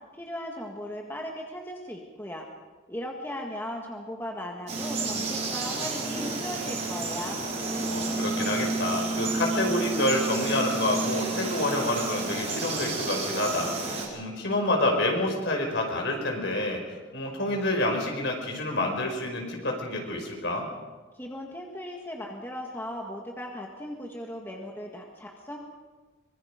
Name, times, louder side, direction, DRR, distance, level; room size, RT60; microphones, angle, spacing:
voice 1, 0.1-2.5 2.9-7.4 21.2-25.6, left 1 dB, 10° left, 0 dB, 1.9 m, -37 dB
Frog, 4.7-14.1, right 3 dB, 35° right, 4.6 m, -30 dB
voice 2, 7.8-16.8 17.1-20.7, left 1 dB, 65° left, 1 dB, 5.4 m, -28 dB
24.5 x 22.0 x 5.2 m, 1.3 s
head